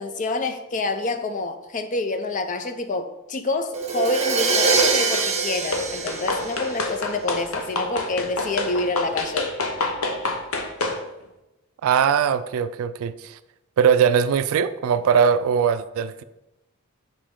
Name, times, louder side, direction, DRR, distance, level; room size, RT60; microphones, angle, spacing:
voice 1, 0.0-9.5, left 3 dB, 35° left, 0.5 m, -27 dB
Crash cymbal, 3.7-7.5, right 4 dB, 30° right, 0.7 m, -23 dB
sound 1, 4.8-5.3 5.7-11.0, left 2 dB, 85° left, 0.8 m, -27 dB
voice 2, 11.8-13.4 13.8-16.2, right 7 dB, 80° right, 0.3 m, -20 dB
5.2 x 5.0 x 3.7 m
head